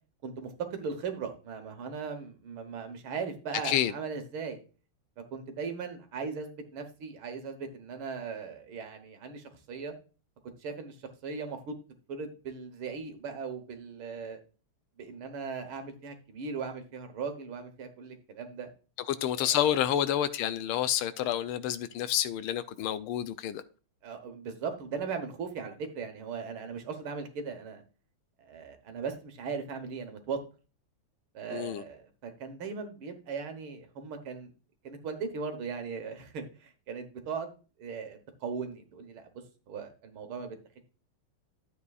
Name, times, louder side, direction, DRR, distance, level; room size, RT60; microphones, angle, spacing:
voice 1, 0.2-4.6 5.3-9.9 10.6-11.0 11.2-11.7 12.1-14.4 15.0-18.7 19.4-19.7 24.0-27.8 28.4-30.4 31.3-34.5 34.8-37.5 37.8-39.3 39.7-40.6, right 5 dB, 70° right, 2.0 m, -38 dB
voice 2, 19.1-23.6 31.5-31.8, left 11 dB, 80° left, 1.5 m, -29 dB
12.5 x 8.1 x 2.4 m
omnidirectional pair, 2.4 m